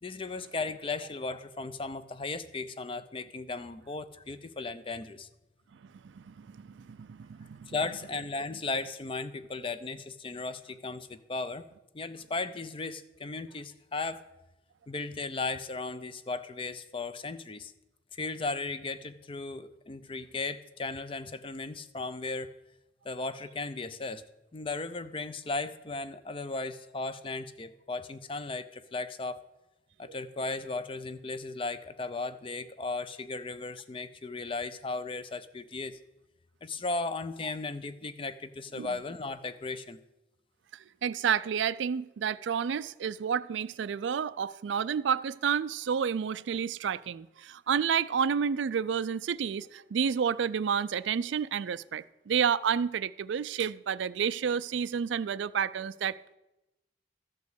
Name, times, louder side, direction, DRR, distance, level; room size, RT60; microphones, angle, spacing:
voice 1, 0.0-5.3 7.7-11.7 11.9-14.2 14.9-17.7 18.1-22.5 23.0-24.2 24.5-29.4 30.0-36.0 36.6-40.0, left 3 dB, 30° left, 0.5 m, -36 dB
voice 2, 6.0-7.7 38.8-39.0 41.0-56.4, right 7 dB, 75° right, 0.4 m, -30 dB
13.5 x 5.2 x 8.0 m
head